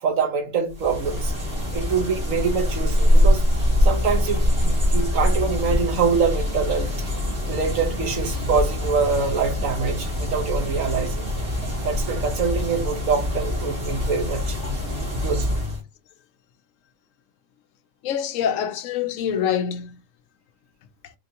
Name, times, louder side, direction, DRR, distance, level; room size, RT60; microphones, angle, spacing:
voice 1, 0.0-1.3 1.7-3.4 3.8-6.9 7.5-11.2 11.8-14.6 15.2-15.5, right 5 dB, 85° right, 1.5 m, -25 dB
sound 1, 0.7-15.8, left 1 dB, 60° right, 2.5 m, -23 dB
voice 2, 18.0-20.0 21.0-21.1, left 8 dB, 85° left, 1.0 m, -25 dB
4.7 x 3.2 x 2.9 m
omnidirectional pair, 1.3 m